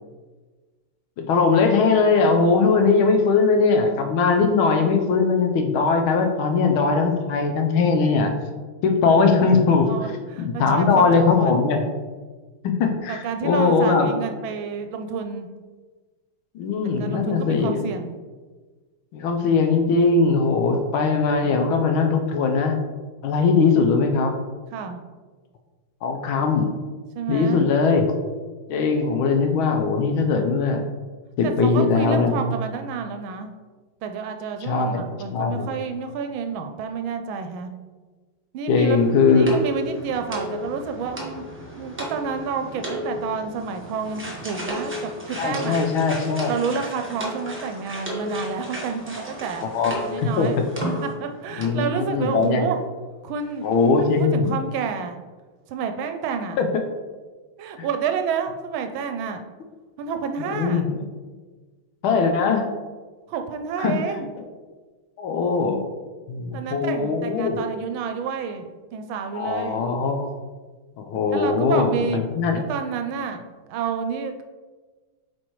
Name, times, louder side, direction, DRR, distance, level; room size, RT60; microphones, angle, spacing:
voice 1, 1.2-8.3 8.8-9.9 10.4-11.8 12.6-14.1 16.5-17.8 19.1-22.7 23.2-24.3 26.0-26.7 27.3-28.1 28.7-30.8 31.4-32.3 34.6-35.0 35.3-35.7 38.7-39.5 45.4-46.5 49.2-49.3 49.7-49.9 50.2-50.9 51.6-52.6 53.6-54.4 56.6-56.7 57.8-57.9 60.4-61.0 62.0-62.7 63.8-64.0 65.2-65.8 66.3-67.6 69.3-70.3 71.0-71.9 72.1-72.6, left 4 dB, 80° left, 4 dB, 1.5 m, -20 dB
voice 2, 9.9-11.5 13.1-15.5 17.0-18.1 21.4-21.7 24.7-25.0 27.1-27.6 31.4-33.5 34.0-37.7 38.5-41.4 41.8-45.8 46.5-49.7 49.9-50.6 50.8-52.8 53.2-53.7 54.1-55.2 55.7-56.6 57.6-59.4 60.0-60.8 63.3-64.3 66.5-69.8 71.3-72.2 72.5-74.4, right 6 dB, 75° right, 7 dB, 1.3 m, -29 dB
sound 1, 38.8-51.4 51.6-51.8 52.4-52.5 52.8-52.9, equal, 10° right, 0.5 m, -34 dB
7.6 x 4.5 x 3.0 m, 1.4 s
omnidirectional pair, 2.3 m